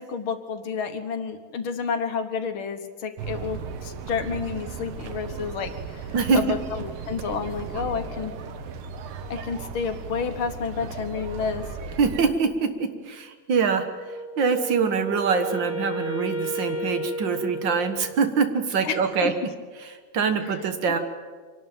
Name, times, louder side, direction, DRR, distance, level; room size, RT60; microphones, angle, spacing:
voice 1, 0.0-8.3 9.3-11.7 18.8-19.3, left 6 dB, 75° left, 8 dB, 2.1 m, -30 dB
sound 1, 3.2-12.3, right 5 dB, 90° right, 1.9 m, -36 dB
voice 2, 6.1-6.5 12.0-19.3 19.8-21.0, right 5 dB, 60° right, 8 dB, 2.1 m, -24 dB
Wind instrument woodwind instrument, 14.1-18.4, right 1 dB, 35° left, 2.5 m, -33 dB
24.5 x 12.0 x 9.0 m, 1.5 s
omnidirectional pair, 2.3 m